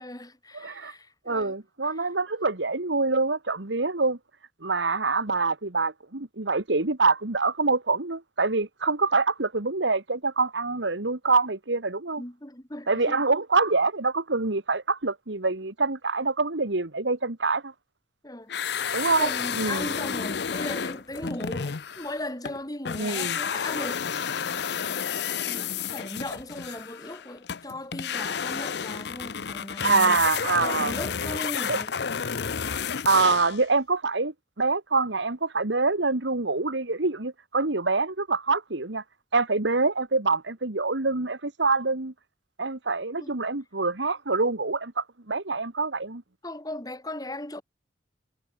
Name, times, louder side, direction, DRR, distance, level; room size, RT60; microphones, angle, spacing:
voice 1, 0.0-1.6 1.8-2.1 12.2-13.2 18.2-24.1 25.4-30.2 30.6-32.0 43.2-43.3 46.4-47.6, left 1 dB, 20° left, 3.5 m, -38 dB
voice 2, 0.5-0.9 1.3-4.2 4.6-12.2 12.9-17.7 18.9-19.3 19.6-19.9 23.0-23.4 29.8-30.9 31.7-31.8 33.0-39.0 39.3-42.1 42.6-46.2, right 3 dB, 75° right, 1.9 m, -25 dB
sound 1, 18.5-22.6 22.8-33.6, left 7 dB, 60° left, 0.6 m, -31 dB
head